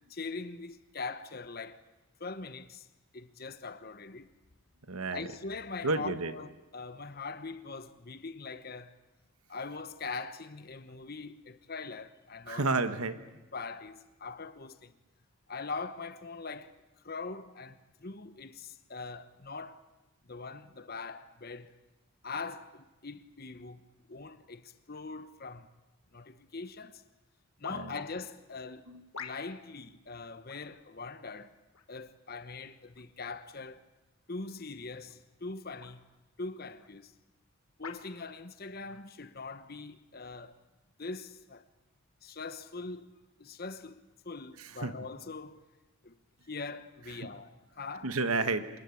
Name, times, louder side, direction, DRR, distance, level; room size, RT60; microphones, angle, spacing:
voice 1, 0.1-1.8 2.2-2.9 3.1-4.3 5.1-9.0 9.5-12.7 13.5-15.0 15.5-16.8 17.0-19.8 20.2-21.8 22.2-25.7 26.1-27.0 27.6-28.9 29.2-31.5 31.9-33.8 34.3-36.0 36.4-37.1 37.8-40.6 41.0-41.6 42.2-43.1 43.4-45.7 46.0-46.2 46.5-48.1, left 4 dB, 45° left, 1.0 m, -42 dB
voice 2, 4.9-5.3 5.8-6.3 12.5-13.2 27.7-27.9 28.9-29.0 44.8-44.9 48.0-48.7, right 3 dB, 90° right, 1.5 m, -30 dB
sound 1, 26.6-26.7 27.6-28.1 29.1-29.7 30.5-30.7 31.7-32.1 32.9-33.1 35.0-35.2 35.8-36.0 36.8-36.9 37.8-38.1 38.9-39.0, left 5 dB, 85° left, 1.8 m, -45 dB
26.5 x 20.0 x 8.5 m
head